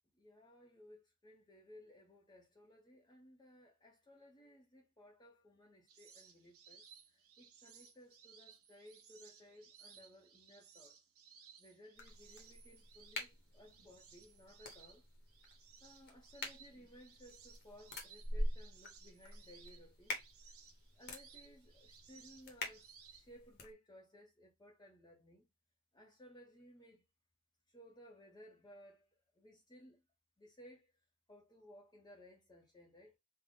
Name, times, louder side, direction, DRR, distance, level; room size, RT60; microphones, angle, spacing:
voice 1, 0.1-10.9 11.6-15.0 15.8-20.1 20.5-20.6 21.0-25.5 25.9-27.1 27.7-30.0 30.4-30.9 31.3-33.2, equal, 20° left, 0.6 m, -60 dB
sound 1, 5.9-23.3, right 7 dB, 70° right, 0.9 m, -62 dB
sound 2, 12.0-23.7, left 1 dB, 50° left, 0.9 m, -46 dB
3.5 x 2.1 x 3.6 m
head